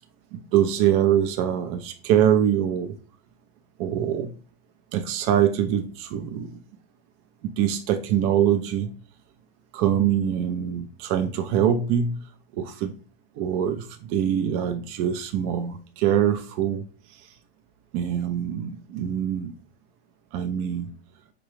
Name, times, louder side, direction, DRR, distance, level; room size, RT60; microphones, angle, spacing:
voice 1, 0.3-3.0 3.8-4.3 4.9-6.6 7.4-8.9 9.7-12.2 12.5-12.9 13.4-17.3 17.9-19.5 20.3-21.0, right 9 dB, 45° right, 0.4 m, -24 dB
4.8 x 2.2 x 3.0 m
supercardioid pair, 120°, 29 cm